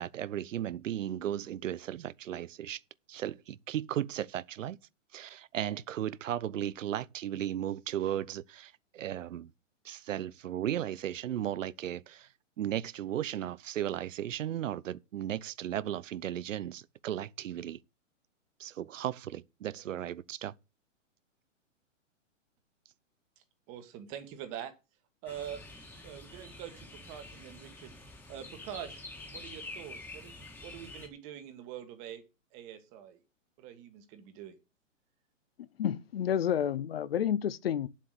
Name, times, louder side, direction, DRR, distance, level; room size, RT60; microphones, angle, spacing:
voice 1, 0.0-2.8 3.1-4.8 5.1-9.5 9.8-12.3 12.6-17.8 18.6-20.5, right 11 dB, 75° right, 0.7 m, -35 dB
voice 2, 23.7-24.7 25.2-25.6 26.0-28.0 28.3-32.2 32.5-33.2 33.6-34.6, right 10 dB, 20° right, 1.3 m, -44 dB
sound 1, 25.3-31.1, left 2 dB, 5° left, 1.5 m, -47 dB
voice 3, 35.8-37.9, left 9 dB, 50° left, 0.8 m, -30 dB
9.1 x 7.5 x 6.6 m
hypercardioid pair, 170°, 38 cm